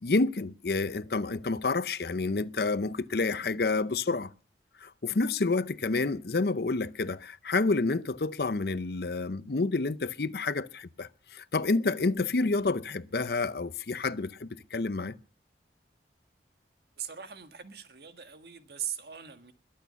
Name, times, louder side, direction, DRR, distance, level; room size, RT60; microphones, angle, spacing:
voice 1, 0.0-4.3 4.8-15.2, left 3 dB, 60° left, 0.6 m, -29 dB
voice 2, 17.0-19.5, right 9 dB, 65° right, 1.6 m, -40 dB
21.5 x 8.6 x 6.8 m
head